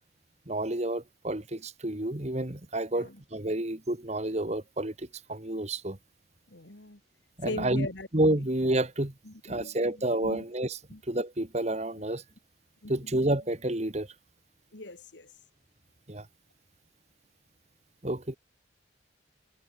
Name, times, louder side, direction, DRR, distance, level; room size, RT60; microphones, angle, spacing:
voice 1, 0.5-6.0 7.4-7.9 8.1-9.1 9.4-10.8 11.1-12.2 12.9-14.1 16.1-16.3 18.0-18.4, right 1 dB, 35° right, 1.7 m, -29 dB
voice 2, 6.5-7.0 7.4-8.1 9.3-9.8 10.2-10.4 10.9-11.0 12.0-12.1 12.8-13.0 14.7-15.3, left 2 dB, 65° left, 2.3 m, -39 dB
head